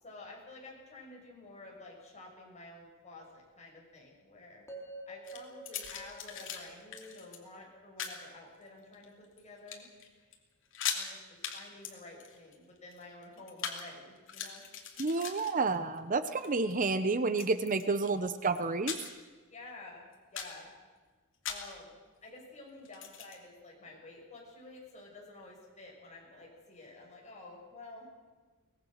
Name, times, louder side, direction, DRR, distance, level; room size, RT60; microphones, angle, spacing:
voice 1, 0.0-4.6 5.1-9.9 10.9-14.6 19.5-20.7 21.5-28.1, left 2 dB, 35° left, -2 dB, 6.7 m, -51 dB
sound 1, 4.7-8.8, right 2 dB, 15° left, 3.4 m, -50 dB
sound 2, 5.2-6.6 6.9-7.4 8.0-8.2 8.8-9.4 9.7-10.1 10.3-10.4 10.7-11.1 11.4-11.6 11.8-13.8 14.2-16.0 16.3-16.7 17.3-18.1 18.5-19.3 19.6-19.7 20.1-20.6 21.5-21.8 22.9-23.4, left 8 dB, 65° left, 2.8 m, -40 dB
voice 2, 15.0-19.0, right 3 dB, 40° right, 11 dB, 0.8 m, -30 dB
23.5 x 19.0 x 6.5 m, 1.4 s
head